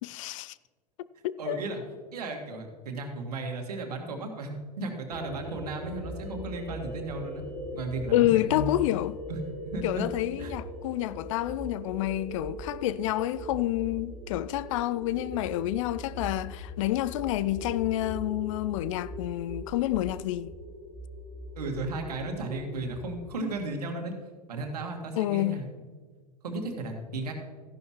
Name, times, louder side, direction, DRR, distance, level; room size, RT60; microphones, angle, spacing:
voice 1, 0.0-0.6 1.2-1.6 8.1-9.2 9.8-20.5 25.2-25.7, left 15 dB, 50° left, 0.4 m, -28 dB
voice 2, 1.4-1.8 2.1-7.4 7.7-8.7 9.3-10.1 10.4-10.5 21.6-24.1 24.5-25.6 26.4-27.3, right 2 dB, 70° right, 1.9 m, -35 dB
sound 1, 5.1-23.3, equal, ahead, 3.6 m, -40 dB
14.0 x 11.0 x 3.0 m
figure-of-eight pair, 85°, 21 cm